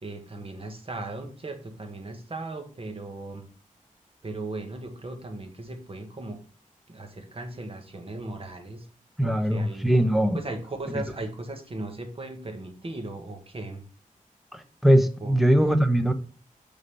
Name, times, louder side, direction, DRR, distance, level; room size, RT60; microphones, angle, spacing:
voice 1, 0.0-3.5 4.2-6.4 6.9-8.9 9.2-9.9 10.3-13.8 15.2-15.4, right 2 dB, 40° right, 1.6 m, -37 dB
voice 2, 9.2-10.4 10.9-11.0 14.5-16.1, right 1 dB, ahead, 0.8 m, -21 dB
6.7 x 4.1 x 5.4 m
wide cardioid pair, 85°, 14 cm